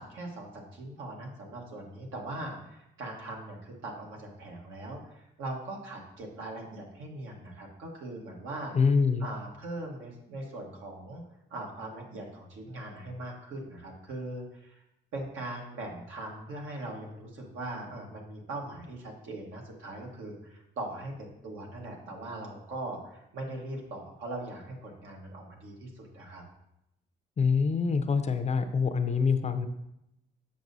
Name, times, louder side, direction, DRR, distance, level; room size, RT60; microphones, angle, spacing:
voice 1, 0.0-8.7 9.2-11.2 11.5-14.8 15.1-26.4, right 2 dB, 80° right, 0 dB, 1.4 m, -40 dB
voice 2, 8.7-9.3 27.4-29.7, left 5 dB, 35° left, 8 dB, 0.5 m, -25 dB
7.3 x 5.3 x 2.7 m, 0.83 s
cardioid pair, 90°, 20 cm